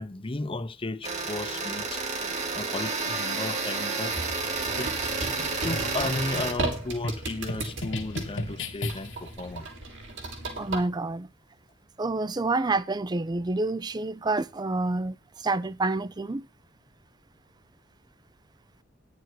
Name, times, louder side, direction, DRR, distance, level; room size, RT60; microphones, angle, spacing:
voice 1, 0.0-2.0 2.5-4.1 4.7-4.9 5.4-9.7, left 2 dB, 30° left, 0.8 m, -34 dB
sound 1, 1.0-6.5, right 4 dB, 35° right, 2.1 m, -30 dB
sound 2, 4.1-10.8, right 2 dB, 70° right, 4.2 m, -36 dB
sound 3, 5.7-9.3, left 1 dB, 70° left, 1.5 m, -35 dB
voice 2, 10.6-11.3 12.0-16.5, right 2 dB, 20° right, 0.5 m, -28 dB
10.5 x 6.8 x 6.3 m
head